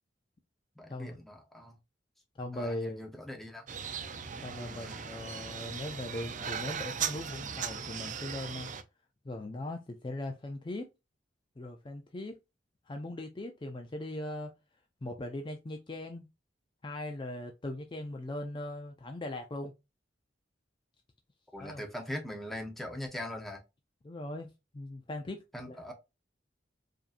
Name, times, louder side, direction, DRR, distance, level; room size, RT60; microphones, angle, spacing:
voice 1, 0.8-1.8 2.5-3.7 4.6-5.0 21.5-23.6 25.5-25.9, left 1 dB, ahead, 0.8 m, -41 dB
voice 2, 2.4-3.1 4.4-8.7 9.2-10.9 11.6-12.4 12.9-14.5 15.0-16.3 16.8-19.7 21.6-21.8 24.0-25.8, left 1 dB, 25° left, 0.4 m, -39 dB
sound 1, 3.7-8.8, right 7 dB, 45° right, 0.5 m, -38 dB
5.0 x 2.7 x 2.5 m
head